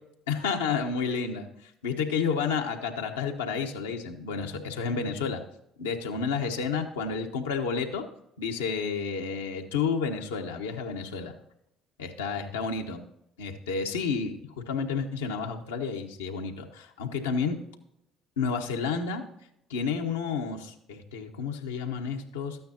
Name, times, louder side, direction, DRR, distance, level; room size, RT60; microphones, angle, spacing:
voice 1, 0.3-5.4 5.8-8.0 8.4-11.3 12.0-13.0 13.4-17.6 18.4-19.3 19.7-22.6, left 5 dB, 85° left, 3 dB, 1.1 m, -31 dB
13.0 x 9.2 x 2.8 m, 0.78 s
hypercardioid pair, 60°, 0 cm